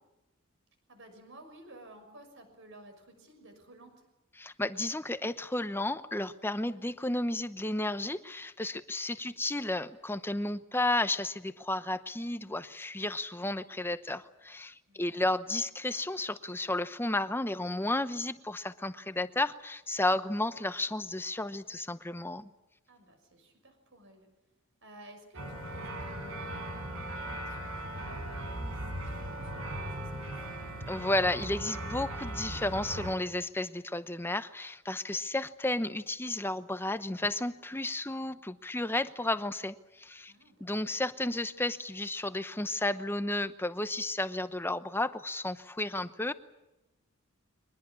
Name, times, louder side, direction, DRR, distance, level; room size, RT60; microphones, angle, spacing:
voice 1, 0.9-4.0 14.9-15.4 22.9-24.3 24.8-30.4 40.3-40.9, right 1 dB, 60° right, 7 dB, 6.2 m, -54 dB
voice 2, 4.4-22.5 30.9-40.3 40.6-46.3, left 2 dB, 10° left, 12 dB, 0.9 m, -32 dB
sound 1, 25.3-33.1, right 1 dB, 75° right, 4.8 m, -38 dB
24.0 x 19.5 x 8.5 m, 0.97 s
head